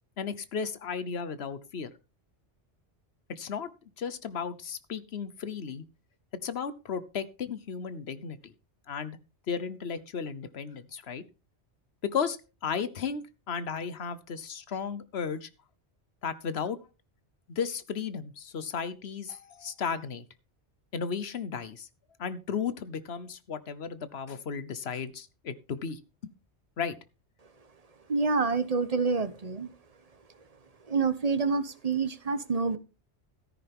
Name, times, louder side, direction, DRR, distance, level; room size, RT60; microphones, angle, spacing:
voice 1, 0.2-1.9 3.3-3.7 4.0-5.8 6.4-8.5 8.9-9.2 9.5-11.2 12.1-15.5 16.2-16.8 17.5-20.2 20.9-21.9 22.2-26.3 26.8-27.0, left 6 dB, 65° left, 14 dB, 1.3 m, -34 dB
voice 2, 28.1-29.7 30.9-32.8, right 4 dB, 35° right, 13 dB, 1.1 m, -27 dB
13.5 x 10.5 x 3.6 m, 0.30 s
omnidirectional pair, 1.2 m